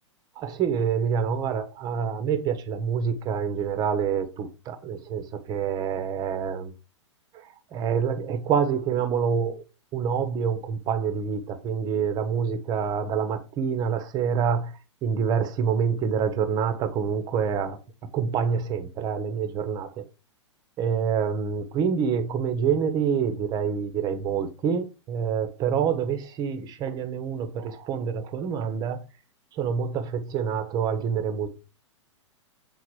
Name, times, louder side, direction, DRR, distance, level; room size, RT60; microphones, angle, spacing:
voice 1, 0.4-6.7 7.3-7.4 7.7-9.6 9.9-14.7 15.0-17.8 18.1-19.9 20.8-29.0 29.5-31.5, right 7 dB, 25° right, 8 dB, 1.0 m, -27 dB
7.3 x 3.9 x 4.7 m, 0.31 s
figure-of-eight pair, 105°, 16 cm